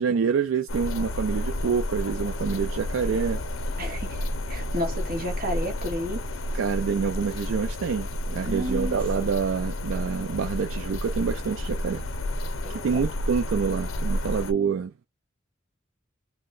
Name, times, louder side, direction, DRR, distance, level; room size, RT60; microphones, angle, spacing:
voice 1, 0.0-3.4 6.5-12.0 12.7-15.1, right 6 dB, 80° right, 0.4 m, -27 dB
sound 1, 0.7-14.5, left 1 dB, 85° left, 0.6 m, -31 dB
voice 2, 3.8-6.2 8.5-9.3 12.6-13.0, equal, 50° right, 1.5 m, -32 dB
2.9 x 2.2 x 3.9 m
head